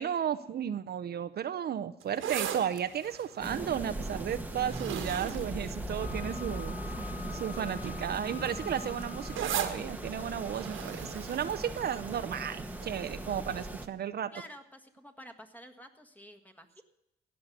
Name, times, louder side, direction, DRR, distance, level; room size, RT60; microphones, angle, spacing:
voice 1, 0.0-6.8 7.3-14.3, right 9 dB, 55° right, 11 dB, 0.6 m, -34 dB
sound 1, 2.0-6.5 7.2-7.5 7.8-12.4 12.8-12.9, right 9 dB, 80° right, 1.6 m, -39 dB
sound 2, 3.4-13.9, right 1 dB, 10° right, 1.2 m, -39 dB
Wind instrument woodwind instrument, 6.0-9.6, left 10 dB, 45° left, 1.0 m, -47 dB
voice 2, 14.3-16.8, equal, 10° left, 6 dB, 1.6 m, -50 dB
16.5 x 5.7 x 9.5 m, 0.84 s
cardioid pair, 90°, 20 cm